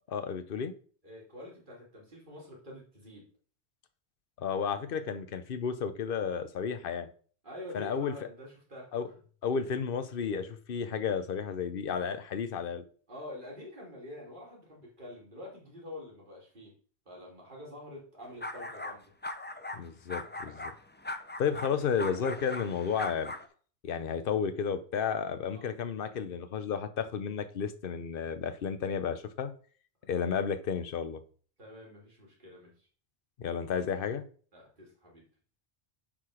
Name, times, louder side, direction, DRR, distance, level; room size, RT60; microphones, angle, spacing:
voice 1, 0.1-0.7 4.4-7.1 7.7-8.1 8.9-9.1 9.4-12.8 19.7-20.7 21.4-23.3 23.8-29.5 30.1-31.2 33.4-34.3, left 6 dB, 60° left, 0.9 m, -32 dB
voice 2, 1.0-3.3 4.6-5.0 7.4-9.1 13.1-16.7 17.0-19.0 25.5-25.7 31.6-32.9 33.6-33.7 34.5-35.3, left 1 dB, 50° right, 2.9 m, -47 dB
sound 1, 18.4-19.0 19.2-19.8 20.1-23.5, left 2 dB, 15° left, 0.4 m, -40 dB
7.4 x 4.8 x 4.9 m
omnidirectional pair, 1.1 m